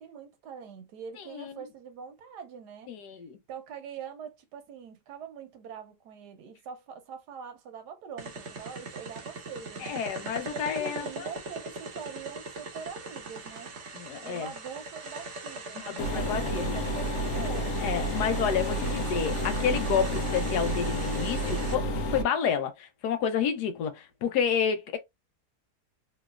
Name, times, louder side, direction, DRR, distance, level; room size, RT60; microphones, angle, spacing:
voice 1, 0.0-2.9 3.5-10.0 10.5-13.7 14.2-19.0, right 7 dB, 90° right, 1.4 m, -44 dB
voice 2, 2.9-3.4 9.8-11.3 13.9-14.5 15.8-16.8 17.8-25.0, left 7 dB, 80° left, 1.3 m, -30 dB
sound 1, 8.2-21.8, right 3 dB, 50° right, 1.1 m, -41 dB
sound 2, 16.0-22.2, equal, 65° left, 1.0 m, -30 dB
3.3 x 3.0 x 2.3 m
omnidirectional pair, 1.7 m